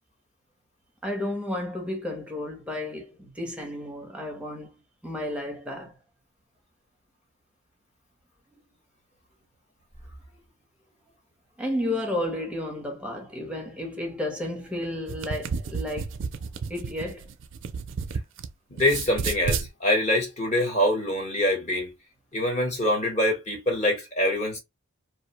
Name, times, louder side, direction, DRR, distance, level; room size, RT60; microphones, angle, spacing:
voice 1, 1.0-4.7 5.0-5.9 11.6-16.2 16.7-17.3, left 1 dB, 5° right, 0.7 m, -32 dB
sound 1, 14.9-18.5 18.8-19.7, right 5 dB, 60° right, 0.4 m, -31 dB
voice 2, 18.7-21.9 22.3-24.6, left 1 dB, 30° left, 1.0 m, -24 dB
2.5 x 2.1 x 2.8 m
head